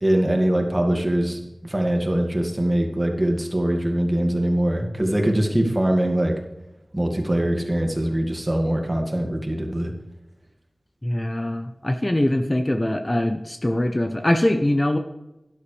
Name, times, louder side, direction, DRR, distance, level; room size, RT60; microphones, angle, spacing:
voice 1, 0.0-6.4 6.9-9.9, right 1 dB, 25° right, 2 dB, 2.1 m, -22 dB
voice 2, 11.0-15.0, left 1 dB, 25° left, 6 dB, 0.8 m, -22 dB
12.0 x 11.5 x 3.4 m, 0.96 s
wide cardioid pair, 70°, 0 cm